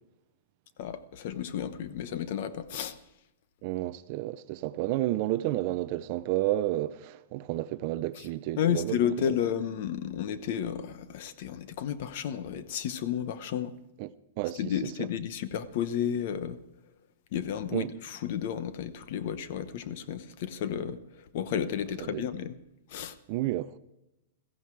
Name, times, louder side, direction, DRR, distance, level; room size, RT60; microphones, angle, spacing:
voice 1, 0.8-3.0 8.6-13.7 14.6-16.6 17.3-21.0 21.3-22.5 22.9-23.2, left 9 dB, 40° left, 0.9 m, -32 dB
voice 2, 3.6-9.4 14.0-14.1 14.4-15.1 17.7-17.9 22.0-22.2 23.3-23.8, right 15 dB, 30° right, 0.5 m, -31 dB
16.0 x 14.5 x 4.6 m
supercardioid pair, 180°, 0 cm